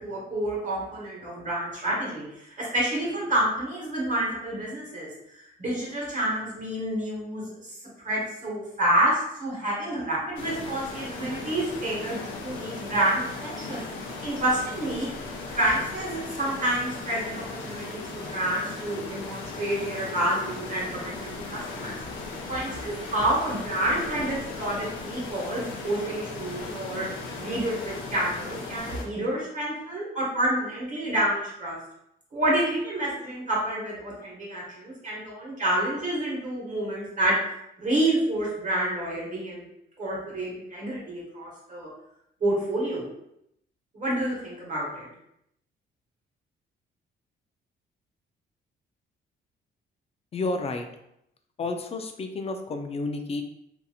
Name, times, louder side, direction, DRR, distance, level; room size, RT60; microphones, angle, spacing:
voice 1, 0.0-7.7 8.0-13.8 14.2-15.1 15.5-22.0 22.5-27.0 27.4-31.8 32.3-37.3 37.8-39.6 40.0-41.9 42.4-43.0 43.9-45.1, right 1 dB, 40° right, -5 dB, 1.1 m, -28 dB
sound 1, 10.4-29.1, left 3 dB, 75° left, 0.6 m, -37 dB
voice 2, 50.3-50.9 51.6-53.4, left 3 dB, 30° left, 6 dB, 0.4 m, -30 dB
2.8 x 2.6 x 2.4 m, 0.78 s
cardioid pair, 90°, 20 cm